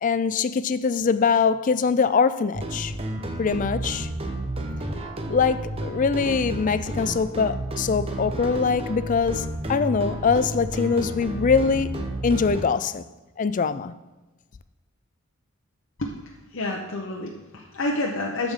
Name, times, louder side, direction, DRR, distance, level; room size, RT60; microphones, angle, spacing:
voice 1, 0.0-2.9 3.4-4.1 5.3-13.0 13.4-13.9, left 5 dB, 35° left, 0.3 m, -23 dB
sound 1, 2.5-12.6, right 1 dB, 25° right, 0.8 m, -31 dB
voice 2, 16.5-18.5, left 2 dB, 60° left, 0.9 m, -29 dB
13.5 x 5.2 x 3.7 m
head